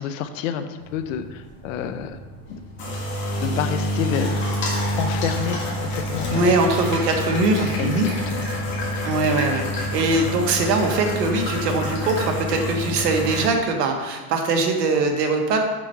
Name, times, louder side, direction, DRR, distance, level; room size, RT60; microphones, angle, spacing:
voice 1, 0.0-2.2 2.5-2.6 3.4-4.3 5.0-5.6 5.9-6.5 7.8-8.5, left 8 dB, 55° left, 9 dB, 0.7 m, -28 dB
sound 1, 0.8-13.5, equal, 25° left, 1.9 m, -27 dB
voice 2, 6.3-8.1 9.0-15.6, right 3 dB, 75° right, 3 dB, 1.4 m, -22 dB
6.2 x 4.4 x 5.7 m, 1.2 s
supercardioid pair, 145°, 48 cm